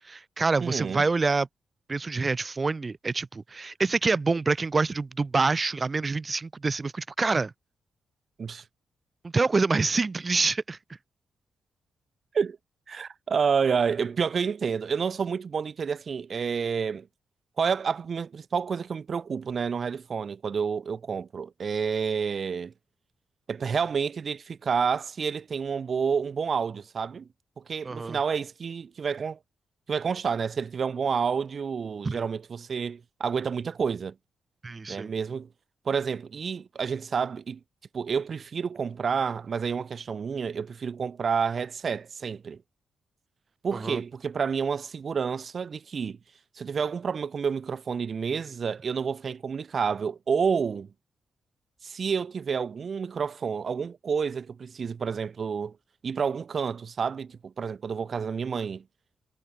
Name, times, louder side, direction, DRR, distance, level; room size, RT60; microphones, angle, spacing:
voice 1, 0.1-1.5 1.9-7.5 9.2-10.8 27.8-28.2 32.0-32.2 34.6-35.1 43.7-44.0, right 3 dB, 35° right, 1.7 m, -26 dB
voice 2, 0.6-1.0 8.4-8.6 12.3-12.6 12.9-17.1 17.6-22.7 23.5-27.3 27.7-29.4 29.9-34.1 34.9-35.5 35.9-37.6 37.9-42.6 43.6-46.2 46.6-50.9 51.8-55.8 56.0-58.8, right 6 dB, 55° right, 5.4 m, -29 dB
cardioid pair, 70°, 0 cm